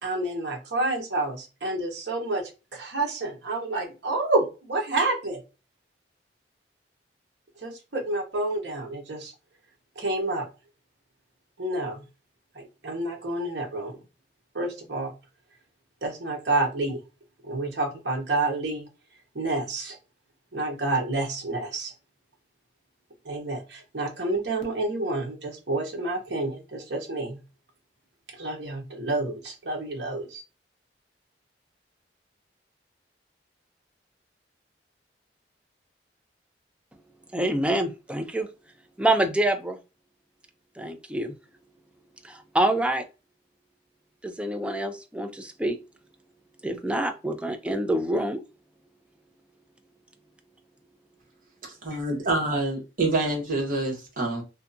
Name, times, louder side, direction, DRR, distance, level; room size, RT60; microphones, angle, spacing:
voice 1, 0.0-5.4 7.6-9.3 10.0-10.5 11.6-12.0 12.5-14.0 14.5-15.1 16.0-17.0 17.4-18.9 19.3-20.0 20.5-21.9 23.2-27.4 28.4-30.4, right 2 dB, 75° right, 0.9 m, -29 dB
voice 2, 37.3-38.5 39.0-39.8 40.8-41.4 42.2-43.0 44.2-45.8 46.6-48.4, right 1 dB, 5° right, 0.4 m, -26 dB
voice 3, 51.8-54.4, right 2 dB, 50° right, 1.1 m, -26 dB
2.7 x 2.3 x 2.5 m
head